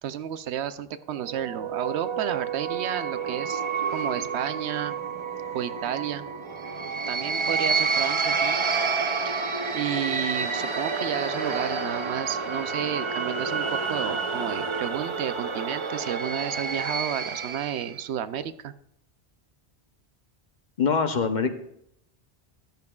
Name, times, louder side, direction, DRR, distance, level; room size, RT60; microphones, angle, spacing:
voice 1, 0.0-3.6 3.9-5.0 5.5-6.3 7.1-8.6 9.2-9.4 9.7-18.7, right 10 dB, 85° right, 12 dB, 0.9 m, -32 dB
sound 1, 1.2-18.0, right 5 dB, 35° right, 0.6 m, -29 dB
voice 2, 20.8-21.5, left 5 dB, 50° left, 8 dB, 0.8 m, -23 dB
13.5 x 10.5 x 2.3 m, 0.75 s
omnidirectional pair, 1.1 m